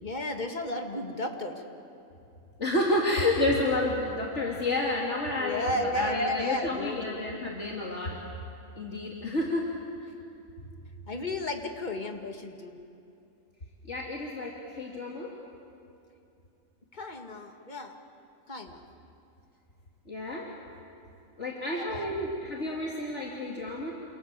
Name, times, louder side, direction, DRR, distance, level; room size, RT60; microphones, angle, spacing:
voice 1, 0.0-1.6 5.4-7.2 11.1-12.8 16.9-18.0 18.5-18.8 21.7-22.1, left 1 dB, 35° left, 4 dB, 2.1 m, -33 dB
voice 2, 2.6-8.2 8.8-9.7 13.9-15.3 20.1-20.4 21.4-23.9, left 2 dB, 55° left, -3 dB, 2.9 m, -30 dB
28.5 x 27.5 x 7.6 m, 2.6 s
omnidirectional pair, 1.4 m